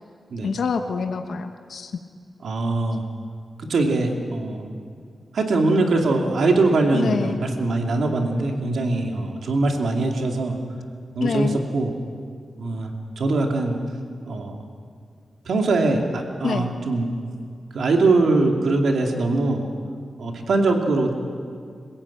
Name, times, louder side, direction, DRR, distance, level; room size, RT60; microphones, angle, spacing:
voice 1, 0.4-1.9 6.9-7.4 11.2-11.6 16.4-16.7, left 5 dB, 75° left, 6 dB, 1.1 m, -26 dB
voice 2, 2.4-3.0 3.7-4.7 5.3-10.5 11.1-11.9 12.6-13.8 14.3-14.6 15.5-17.1 17.7-19.7 20.2-21.1, right 2 dB, 80° right, 3 dB, 2.7 m, -22 dB
27.5 x 16.0 x 8.7 m, 2.2 s
wide cardioid pair, 100°, 0 cm